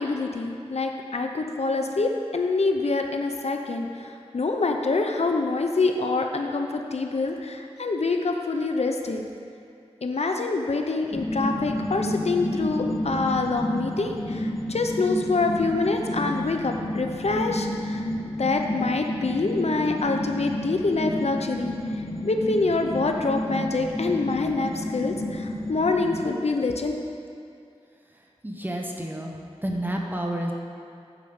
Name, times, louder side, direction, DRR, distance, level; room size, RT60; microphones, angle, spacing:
voice 1, 0.0-9.2 10.0-18.1 18.4-27.0, left 3 dB, 70° left, 3 dB, 0.7 m, -26 dB
sound 1, 11.1-26.3, left 1 dB, 30° left, 0.8 m, -31 dB
voice 2, 28.4-29.3 29.6-30.5, right 1 dB, 15° right, 0 dB, 1.2 m, -29 dB
9.1 x 5.1 x 7.1 m, 2.5 s
wide cardioid pair, 70°, 11 cm